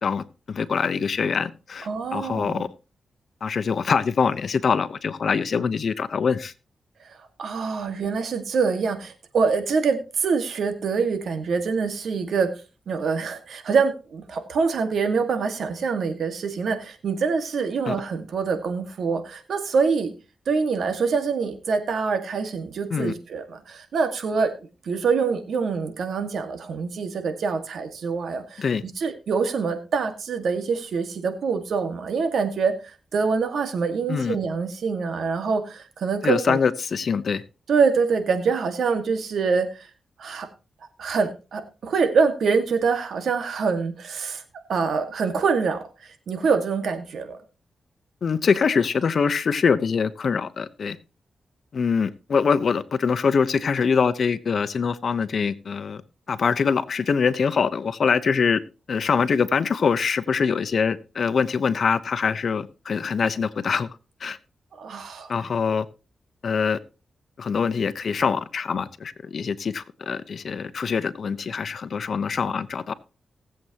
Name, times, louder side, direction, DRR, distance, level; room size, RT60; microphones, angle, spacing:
voice 1, 0.0-2.7 3.4-6.5 17.9-18.0 22.9-23.1 28.6-28.8 34.1-34.4 36.2-37.4 48.2-51.0 51.7-56.0 56.3-58.6 58.9-63.9 64.2-64.4 65.3-65.8 66.4-66.8 67.4-72.9, left 5 dB, 65° left, 15 dB, 0.8 m, -24 dB
voice 2, 1.9-2.6 7.1-12.5 12.9-20.1 20.5-24.5 24.8-36.6 37.7-39.9 40.2-40.5 41.0-44.4 44.7-47.4 64.7-65.3, right 5 dB, 80° right, 8 dB, 1.7 m, -25 dB
19.5 x 7.8 x 2.9 m, 0.31 s
cardioid pair, 70°, 0 cm